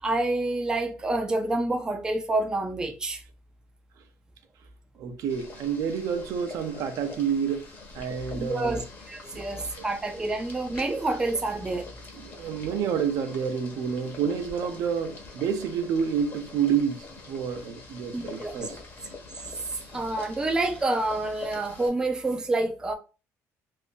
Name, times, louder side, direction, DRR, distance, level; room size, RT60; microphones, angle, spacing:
voice 1, 0.0-3.2 8.3-8.8 9.1-11.9 18.1-18.7 19.9-22.9, right 2 dB, 10° right, 0.4 m, -28 dB
voice 2, 5.0-7.7 7.9-8.8 9.3-9.6 12.2-18.8, right 7 dB, 65° right, 0.5 m, -29 dB
Boiling, 5.3-21.9, left 3 dB, 35° left, 0.9 m, -44 dB
2.6 x 2.6 x 3.6 m
cardioid pair, 150°, 6 cm